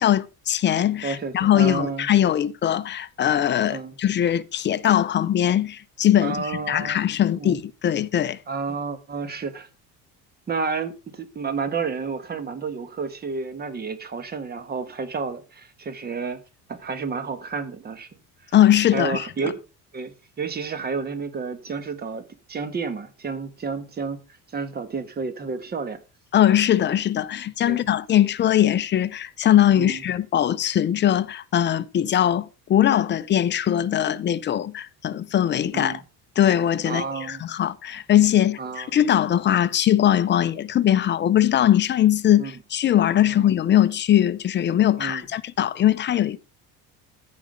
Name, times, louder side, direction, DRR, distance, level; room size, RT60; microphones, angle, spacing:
voice 1, 0.0-8.4 18.5-19.3 26.3-36.0 36.4-46.4, left 11 dB, 30° left, 0.5 m, -21 dB
voice 2, 1.0-2.1 3.7-3.9 6.2-7.1 7.4-7.6 8.5-9.7 10.5-16.4 16.7-18.1 18.9-19.6 19.9-24.2 24.5-26.0 27.6-27.8 29.7-30.0 35.7-36.0 36.8-37.4 38.6-38.9 42.4-42.5 43.3-43.5 45.0-45.2, right 5 dB, 25° right, 1.4 m, -30 dB
14.5 x 5.0 x 5.1 m
cardioid pair, 140°, 36 cm